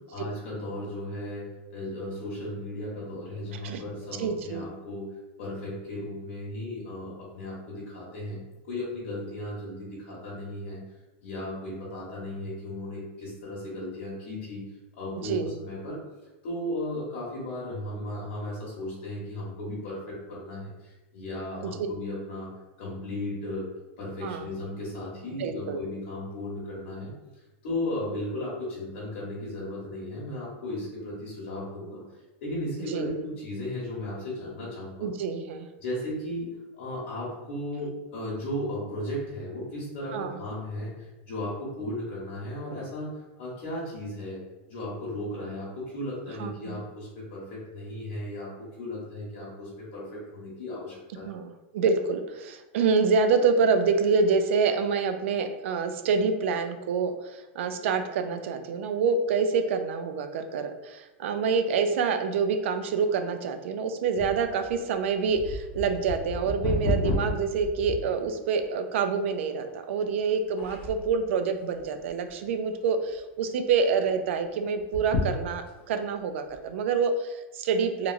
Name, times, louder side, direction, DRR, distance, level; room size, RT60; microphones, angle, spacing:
voice 1, 0.1-5.1 5.4-8.4 8.7-10.8 11.2-14.6 15.0-16.0 16.4-22.5 22.8-23.7 24.0-27.1 27.6-32.0 32.4-35.1 35.8-43.1 43.4-44.4 44.7-51.3, left 1 dB, 65° left, -6 dB, 1.0 m, -35 dB
voice 2, 4.2-4.6 15.2-15.5 21.8-21.9 24.2-24.5 25.4-25.8 32.9-33.2 35.0-35.7 40.1-40.4 46.4-46.8 51.2-78.1, right 5 dB, 80° right, 7 dB, 0.3 m, -27 dB
sound 1, 64.2-68.6 69.2-69.3 70.0-70.3 70.6-71.2 71.8-72.5 72.8-72.9 73.2-73.3 74.8-75.9 76.5-76.6, left 2 dB, 35° left, 0.6 m, -32 dB
2.9 x 2.4 x 2.5 m, 1.1 s
supercardioid pair, 150°, 7 cm